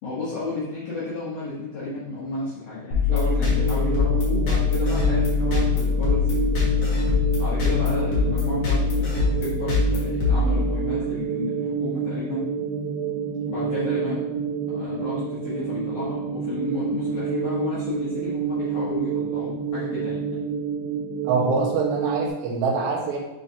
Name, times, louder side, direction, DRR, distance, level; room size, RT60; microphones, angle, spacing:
voice 1, 0.0-6.6 7.4-12.5 13.5-14.2 14.7-20.4, left 3 dB, 75° left, -9 dB, 1.4 m, -32 dB
sound 1, 2.9-11.1, left 5 dB, 50° left, 2.8 m, -23 dB
sound 2, 3.1-22.3, right 6 dB, 90° right, 2.9 m, -29 dB
voice 2, 21.2-23.2, right 4 dB, 70° right, -3 dB, 3.0 m, -24 dB
9.6 x 3.9 x 2.8 m, 1.0 s
omnidirectional pair, 4.8 m